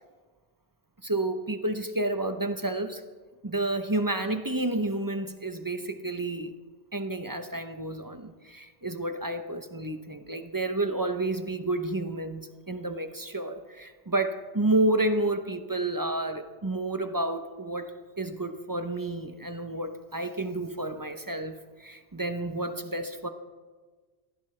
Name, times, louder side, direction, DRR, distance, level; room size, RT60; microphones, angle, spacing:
voice 1, 1.0-3.0 3.4-6.6 6.9-23.3, right 2 dB, 25° right, 8 dB, 0.7 m, -30 dB
19.5 x 15.5 x 3.3 m, 1.4 s
omnidirectional pair, 1.0 m